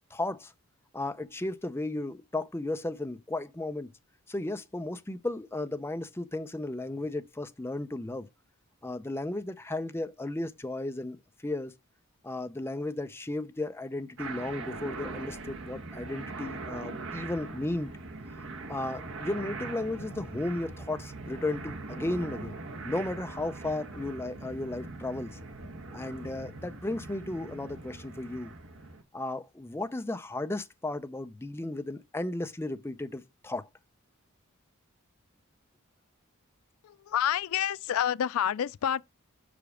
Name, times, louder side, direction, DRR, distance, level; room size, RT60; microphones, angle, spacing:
voice 1, 0.1-0.5 0.9-3.9 4.3-8.3 8.8-11.7 12.2-17.9 18.7-22.6 22.8-25.4 25.9-28.5 29.1-33.7, left 2 dB, 10° left, 0.5 m, -34 dB
sound 1, 14.2-29.0, right 3 dB, 60° right, 1.2 m, -41 dB
voice 2, 36.8-39.0, left 9 dB, 70° left, 0.3 m, -28 dB
5.9 x 5.1 x 4.9 m
head